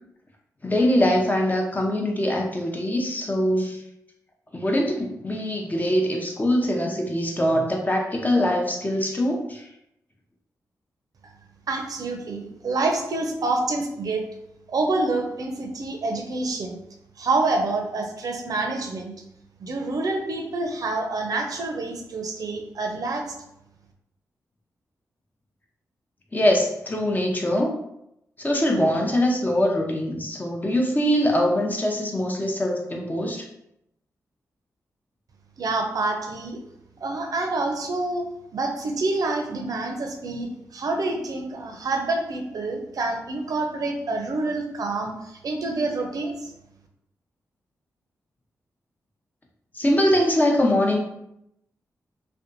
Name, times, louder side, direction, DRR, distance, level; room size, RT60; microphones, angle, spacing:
voice 1, 0.6-3.8 4.5-9.6 26.3-27.7 28.4-33.4 49.7-51.0, left 1 dB, 25° left, 0 dB, 0.6 m, -23 dB
voice 2, 11.7-14.2 14.7-16.8 17.2-19.1 19.6-23.3 35.6-36.6 37.0-38.2 38.5-46.5, right 2 dB, 65° right, 3 dB, 0.5 m, -27 dB
2.6 x 2.2 x 2.5 m, 0.81 s
supercardioid pair, 45°, 7 cm